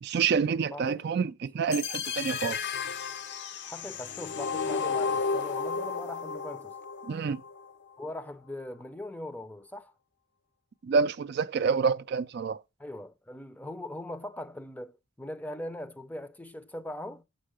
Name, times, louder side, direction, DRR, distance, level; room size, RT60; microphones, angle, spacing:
voice 1, 0.0-2.6 7.1-7.4 10.8-12.6, right 5 dB, 55° right, 0.4 m, -27 dB
voice 2, 0.7-1.0 3.6-6.8 8.0-9.9 12.8-17.2, left 1 dB, 10° left, 0.5 m, -40 dB
sound 1, 1.7-7.7, left 5 dB, 60° left, 0.6 m, -33 dB
7.5 x 5.4 x 5.0 m
head